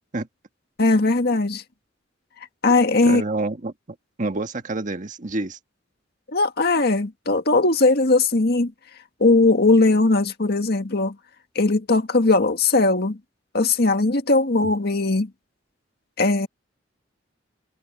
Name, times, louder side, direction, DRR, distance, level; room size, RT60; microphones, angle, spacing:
voice 1, 0.8-1.6 2.6-3.2 6.3-8.7 9.2-11.2 11.6-13.2 13.5-15.3 16.2-16.5, left 3 dB, 55° left, 1.9 m, -19 dB
voice 2, 3.0-3.7 4.2-5.6, right 2 dB, 45° right, 1.5 m, -27 dB
head